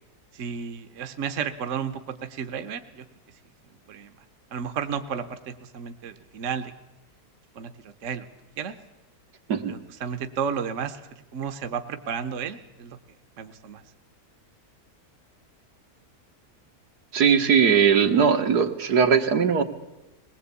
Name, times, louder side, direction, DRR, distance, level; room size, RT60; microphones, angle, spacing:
voice 1, 0.3-3.0 3.9-4.1 4.5-6.7 7.5-8.3 8.6-8.7 9.7-13.0 13.4-13.8, right 7 dB, 55° right, 9 dB, 1.3 m, -33 dB
voice 2, 17.1-19.6, right 7 dB, 80° right, 7 dB, 2.1 m, -20 dB
22.0 x 19.5 x 8.3 m, 1.0 s
omnidirectional pair, 1.7 m